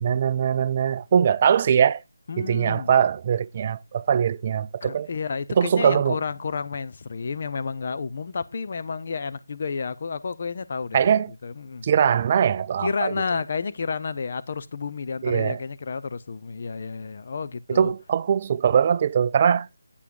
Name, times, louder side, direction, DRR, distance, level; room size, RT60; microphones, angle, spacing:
voice 1, 0.0-2.0 2.4-5.1 5.6-6.2 10.9-11.3 11.8-13.1 15.2-15.6 17.7-19.7, right 8 dB, 30° right, 0.3 m, -21 dB
voice 2, 2.3-2.9 4.8-11.1 11.4-11.9 12.8-17.9, left 5 dB, 45° left, 0.6 m, -31 dB
8.6 x 4.9 x 4.6 m
figure-of-eight pair, 155°, 0 cm